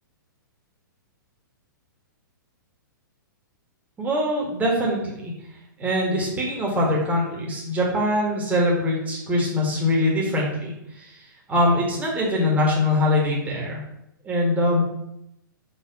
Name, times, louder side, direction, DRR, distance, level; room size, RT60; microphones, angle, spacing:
voice 1, 4.0-5.3 5.8-11.2 11.5-13.8 14.2-14.8, left 1 dB, 15° right, -3 dB, 1.7 m, -23 dB
4.8 x 4.2 x 5.3 m, 0.83 s
figure-of-eight pair, 110°, 11 cm